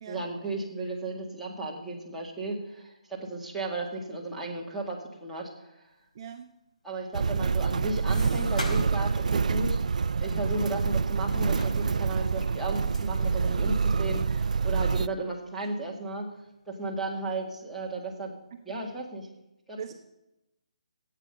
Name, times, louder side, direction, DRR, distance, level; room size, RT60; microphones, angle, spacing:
voice 1, 0.1-5.7 6.8-9.8 10.2-16.3 16.7-18.3 18.7-19.3 19.7-19.9, right 2 dB, ahead, -7 dB, 1.9 m, -34 dB
voice 2, 6.1-6.5 18.7-18.8 19.8-19.9, right 7 dB, 35° right, 5 dB, 0.9 m, -41 dB
Motor vehicle (road), 7.1-15.1, right 5 dB, 75° right, 0.3 m, -27 dB
sound 1, 7.2-9.1 9.4-9.6 10.2-11.1 11.4-13.9 14.5-14.6 14.8-14.9 15.6-15.8 16.3-16.9 17.3-18.0, left 1 dB, 90° left, 4.2 m, -43 dB
14.5 x 8.7 x 5.4 m, 0.91 s
hypercardioid pair, 165°, 4 cm